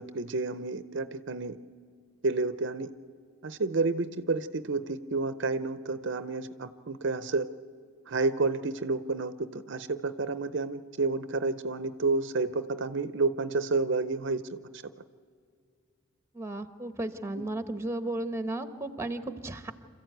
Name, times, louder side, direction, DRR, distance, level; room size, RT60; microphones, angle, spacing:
voice 1, 0.0-1.6 2.2-2.9 3.4-7.5 8.1-14.4, right 3 dB, 60° right, 13 dB, 0.6 m, -30 dB
voice 2, 16.3-19.7, right 2 dB, 15° right, 10 dB, 1.0 m, -34 dB
27.0 x 14.5 x 9.2 m, 2.1 s
head